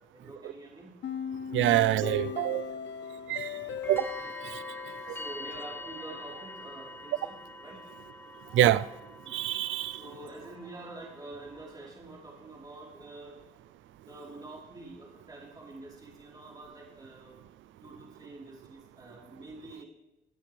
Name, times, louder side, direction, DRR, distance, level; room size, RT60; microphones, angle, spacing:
voice 1, 0.1-1.0 2.2-2.4 3.6-4.3 4.6-8.7 9.2-9.4 9.9-13.4 14.1-17.4 17.8-19.9, right 2 dB, 20° right, 4.0 m, -47 dB
sound 1, 1.0-6.1, left 8 dB, 65° left, 0.8 m, -39 dB
voice 2, 1.5-2.6 3.3-3.5 3.9-4.1 8.5-8.8 9.3-9.9, right 13 dB, 75° right, 0.5 m, -25 dB
sound 2, 2.9-11.7, left 1 dB, 10° left, 2.9 m, -45 dB
24.5 x 9.0 x 3.4 m
cardioid pair, 90°, 20 cm